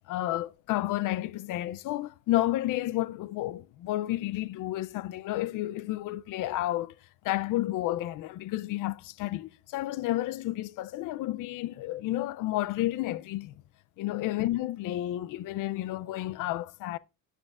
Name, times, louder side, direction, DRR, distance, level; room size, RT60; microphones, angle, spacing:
voice 1, 0.1-7.0 7.2-13.5 14.0-17.0, left 15 dB, 65° left, 0.5 m, -31 dB
13.0 x 7.6 x 2.4 m
cardioid pair, 165°, 34 cm